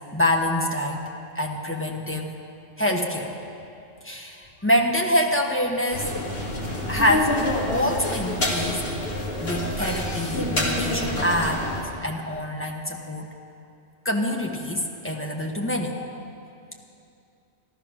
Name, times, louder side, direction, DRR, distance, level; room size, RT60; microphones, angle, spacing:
voice 1, 0.1-1.0 1.3-2.3 2.8-3.3 4.0-6.1 6.9-7.3 7.7-8.8 9.4-11.7 12.0-13.3 14.0-15.9, left 1 dB, 10° left, 0 dB, 1.1 m, -25 dB
sound 1, 5.9-11.8, left 1 dB, 55° left, 2.4 m, -27 dB
14.0 x 13.0 x 6.1 m, 2.6 s
omnidirectional pair, 1.3 m